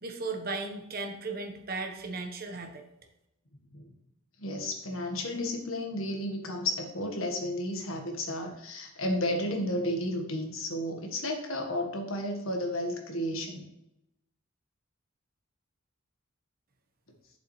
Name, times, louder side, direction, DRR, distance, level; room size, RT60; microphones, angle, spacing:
voice 1, 0.0-2.8, right 3 dB, 50° right, 4 dB, 1.2 m, -36 dB
voice 2, 4.4-13.6, left 1 dB, 85° left, 3 dB, 1.5 m, -32 dB
8.8 x 7.1 x 3.3 m, 0.85 s
head